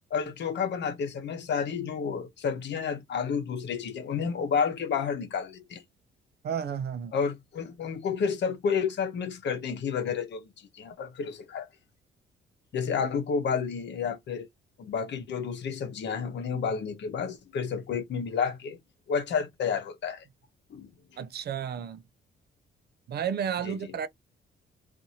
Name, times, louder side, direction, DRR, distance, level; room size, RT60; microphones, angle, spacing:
voice 1, 0.1-5.8 7.1-11.7 12.7-14.5 14.8-18.8 19.1-20.2 20.7-20.9 23.6-23.9, left 6 dB, 65° left, 0.9 m, -30 dB
voice 2, 6.4-7.1 21.2-22.0 23.1-24.1, right 8 dB, 55° right, 0.5 m, -32 dB
2.6 x 2.6 x 2.7 m
cardioid pair, 90°, 20 cm